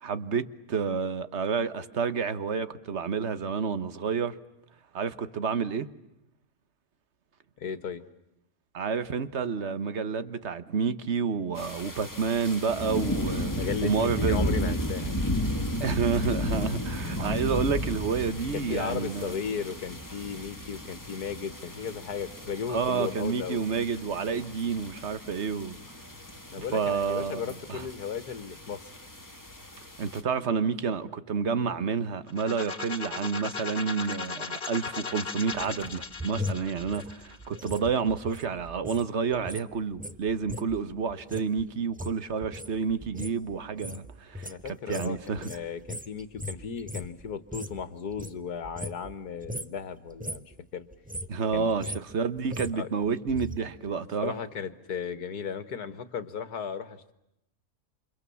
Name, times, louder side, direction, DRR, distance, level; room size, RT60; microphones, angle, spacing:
voice 1, 0.0-4.4 4.9-5.9 8.7-13.5 13.8-14.8 15.8-19.3 22.7-25.8 26.7-27.9 30.0-44.5 44.9-45.5 51.3-54.3, right 5 dB, 50° right, 1.5 m, -29 dB
voice 2, 7.6-8.0 13.5-15.1 18.5-23.6 26.5-28.9 44.4-50.4 50.7-50.9 51.5-51.7 52.7-52.9 54.2-57.1, left 7 dB, 85° left, 2.0 m, -35 dB
sound 1, 11.6-30.2, left 1 dB, 10° left, 2.2 m, -34 dB
sound 2, 32.3-38.1, left 5 dB, 45° left, 1.4 m, -37 dB
sound 3, 35.5-39.1 39.3-47.8 48.1-49.2 49.4-49.8 50.1-50.5 50.9-53.6 53.9-54.0, left 1 dB, 10° right, 0.6 m, -39 dB
29.0 x 27.0 x 7.1 m
omnidirectional pair, 1.6 m